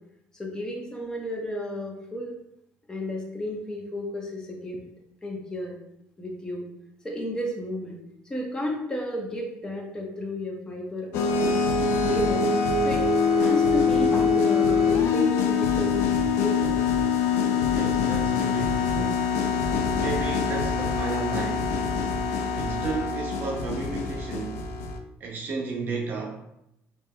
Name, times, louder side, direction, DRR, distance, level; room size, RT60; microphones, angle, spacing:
voice 1, 0.3-2.4 2.9-4.8 5.2-5.8 6.2-6.7 7.0-8.0 8.2-11.5 12.1-12.5 12.8-13.1 13.4-16.0 16.4-16.8, left 1 dB, 15° left, -1 dB, 0.9 m, -32 dB
sound 1, 11.1-25.0, left 5 dB, 80° left, 0.4 m, -24 dB
voice 2, 17.5-19.3 19.6-21.7 22.5-24.7 25.2-26.5, right 4 dB, 50° right, -1 dB, 0.7 m, -33 dB
5.3 x 2.8 x 2.3 m, 0.80 s
cardioid pair, 115°, 5 cm